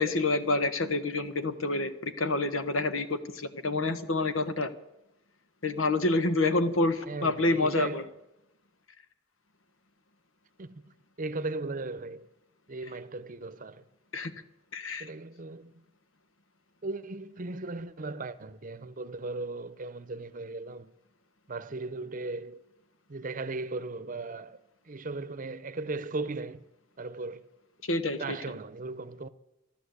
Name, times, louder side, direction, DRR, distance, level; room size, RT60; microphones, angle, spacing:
voice 1, 0.0-4.7 5.6-8.0 14.1-14.3 14.7-15.1 27.9-28.4, left 2 dB, 90° left, 1.3 m, -28 dB
voice 2, 7.1-8.1 10.6-12.3 12.7-13.8 15.0-15.8 16.8-20.9 21.5-22.6 23.1-24.6 24.9-26.6 27.0-27.5 28.1-29.3, right 3 dB, 45° right, 0.8 m, -37 dB
14.0 x 12.0 x 8.2 m
head